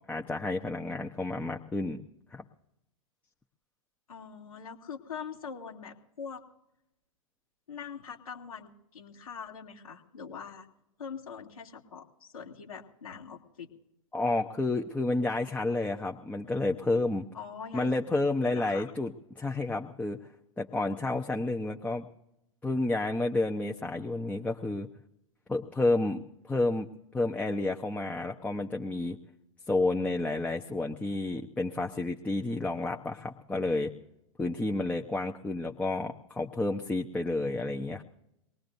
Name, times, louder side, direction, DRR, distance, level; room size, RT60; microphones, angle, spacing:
voice 1, 0.1-2.0 2.3-2.4 14.1-17.2 17.7-20.2 20.6-22.1 22.6-24.9 25.5-26.2 26.4-26.9 27.1-29.2 29.7-33.9 34.4-38.0, left 2 dB, 10° left, 2 dB, 0.8 m, -30 dB
voice 2, 4.1-6.4 7.7-10.7 11.0-13.7 17.3-18.9, left 6 dB, 90° left, -2 dB, 2.5 m, -43 dB
24.0 x 19.0 x 2.7 m, 0.82 s
hypercardioid pair, 110°, 18 cm